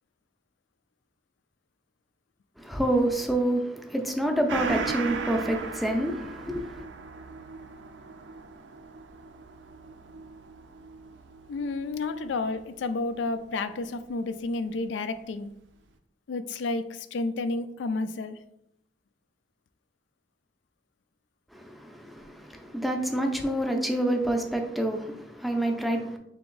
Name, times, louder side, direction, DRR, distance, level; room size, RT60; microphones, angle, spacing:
voice 1, 2.6-6.8 21.5-26.2, right 1 dB, ahead, 0.5 m, -28 dB
Gong, 4.5-13.4 13.8-13.9, right 4 dB, 75° right, 0.4 m, -38 dB
voice 2, 11.5-15.5 16.3-18.4, left 3 dB, 85° left, 0.4 m, -31 dB
3.4 x 2.9 x 3.8 m
head